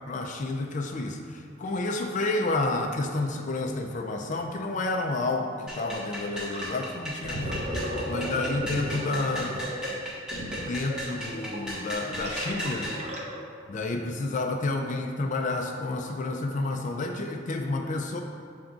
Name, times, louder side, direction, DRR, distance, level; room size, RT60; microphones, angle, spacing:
voice 1, 0.1-9.6 10.6-12.9 13.7-18.2, left 2 dB, 40° left, 3 dB, 0.4 m, -30 dB
sound 1, 5.7-13.0, equal, 5° right, 0.9 m, -37 dB
Gurgling, 6.5-6.7 7.1-13.6, equal, 35° right, 0.9 m, -35 dB
7.4 x 3.4 x 3.8 m, 2.3 s
head